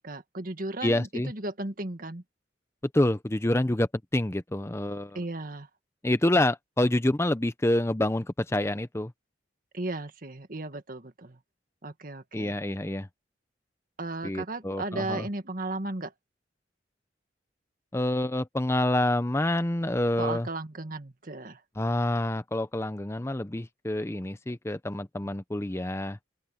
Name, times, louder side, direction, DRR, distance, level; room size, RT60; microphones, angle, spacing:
voice 1, 0.0-2.2 5.2-5.7 9.7-11.4 11.8-12.6 14.0-16.1 20.2-21.6, right 2 dB, 50° right, 1.8 m, -35 dB
voice 2, 0.8-1.3 2.9-5.2 6.0-9.1 12.3-13.1 14.2-15.3 17.9-20.5 21.8-26.2, left 1 dB, 15° left, 0.7 m, -27 dB
open air
head